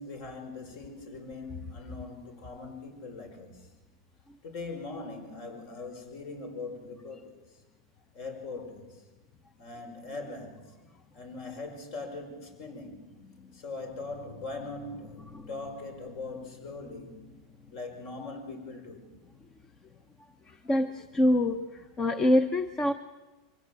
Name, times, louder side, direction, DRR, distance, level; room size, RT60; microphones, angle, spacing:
voice 1, 0.0-3.6 4.4-7.4 8.1-9.0 9.6-10.7 11.1-13.1 13.5-17.2 17.7-19.1, left 3 dB, 55° left, 5.1 m, -41 dB
voice 2, 20.5-22.9, left 1 dB, 20° left, 0.9 m, -26 dB
24.0 x 16.5 x 7.7 m
supercardioid pair, 140°, 3 cm